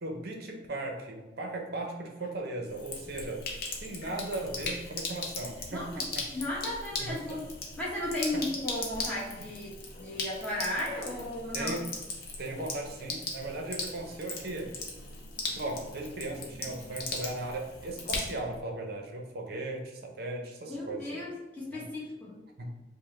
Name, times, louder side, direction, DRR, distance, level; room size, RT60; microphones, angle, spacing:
voice 1, 0.0-3.5 3.8-6.3 7.0-7.4 8.3-8.4 11.5-11.9 12.4-14.8 15.6-21.2 21.7-21.8 22.6-22.7, right 2 dB, 50° right, 2 dB, 0.6 m, -37 dB
Sink (filling or washing), 2.7-18.6, left 3 dB, 50° left, 0.7 m, -39 dB
voice 2, 5.7-6.0 6.3-7.4 7.8-9.7 10.0-11.7 20.7-22.3, left 1 dB, 5° left, -7 dB, 1.0 m, -35 dB
5.2 x 2.1 x 3.2 m, 1.1 s
head